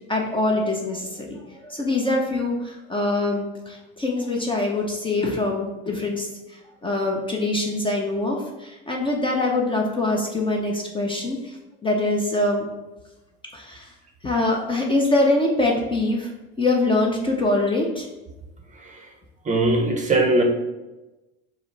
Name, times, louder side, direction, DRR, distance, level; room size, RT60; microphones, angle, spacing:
voice 1, 0.1-12.7 13.5-13.9 14.2-16.3 16.6-18.1, left 2 dB, 15° left, 0 dB, 0.6 m, -24 dB
voice 2, 19.5-20.4, right 2 dB, 25° right, 2 dB, 0.7 m, -20 dB
4.9 x 2.0 x 4.4 m, 1.0 s
supercardioid pair, 105°, 32 cm